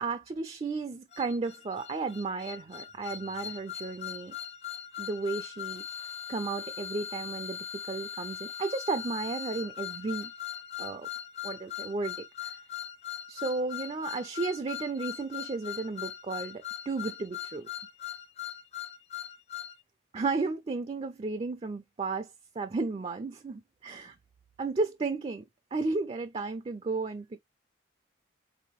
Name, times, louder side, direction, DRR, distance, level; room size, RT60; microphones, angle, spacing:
voice 1, 0.0-4.3 5.0-7.6 7.9-10.3 10.8-11.1 11.4-12.6 13.3-17.7 20.1-22.3 22.6-24.2 24.6-25.4 25.7-27.4, right 3 dB, 30° right, 0.4 m, -33 dB
sound 1, 1.1-19.8, left 9 dB, 30° left, 0.5 m, -40 dB
4.2 x 2.8 x 2.9 m
head